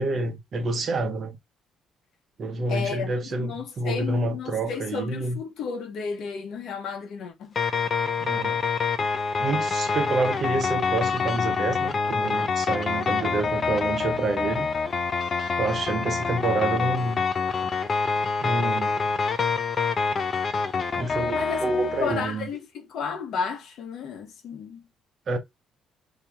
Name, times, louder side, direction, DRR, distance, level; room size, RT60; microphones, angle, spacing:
voice 1, 0.0-1.4 2.4-5.4 8.2-8.6 9.4-14.7 15.6-17.2 18.4-19.1 21.0-22.5 25.3-25.4, right 3 dB, 40° right, 0.9 m, -28 dB
voice 2, 2.7-7.5 21.3-21.6 22.0-24.8, left 6 dB, 65° left, 1.1 m, -32 dB
sound 1, 7.5-22.3, left 5 dB, 35° left, 0.5 m, -26 dB
2.9 x 2.8 x 3.5 m
cardioid pair, 140°, 0 cm